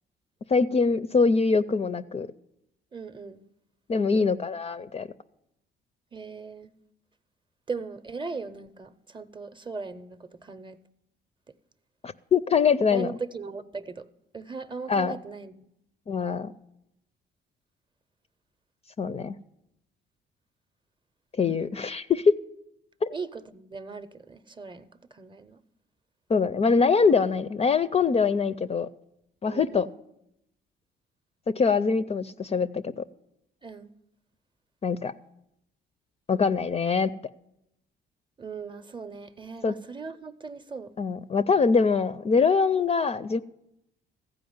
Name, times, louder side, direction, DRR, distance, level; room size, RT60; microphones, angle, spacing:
voice 1, 0.5-2.3 3.9-5.1 12.0-13.1 14.9-15.2 16.1-16.5 19.0-19.4 21.4-22.3 23.0-23.1 26.3-28.9 29.4-29.9 31.6-33.0 34.8-35.1 36.3-37.1 39.6-39.7 41.0-43.4, left 5 dB, 30° left, 0.4 m, -23 dB
voice 2, 2.9-3.4 6.1-6.7 7.7-10.8 12.9-14.1 14.3-15.6 23.1-25.6 27.3-27.4 29.5-29.9 33.6-33.9 38.4-40.9, right 4 dB, 25° right, 0.6 m, -38 dB
15.0 x 5.0 x 9.4 m
cardioid pair, 90°, 20 cm